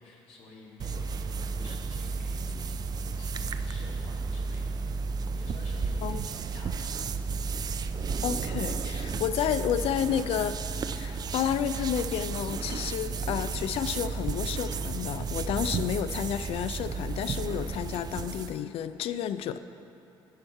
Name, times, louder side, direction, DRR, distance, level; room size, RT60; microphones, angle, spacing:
voice 1, 0.0-4.9 5.3-7.0, left 3 dB, 80° left, -3 dB, 1.5 m, -50 dB
sound 1, 0.8-18.6, right 4 dB, 40° right, 0.3 m, -33 dB
voice 2, 8.2-10.6 10.9-19.6, left 9 dB, 65° left, 12 dB, 0.4 m, -31 dB
9.8 x 5.7 x 4.4 m, 2.9 s
cardioid pair, 80°, 10 cm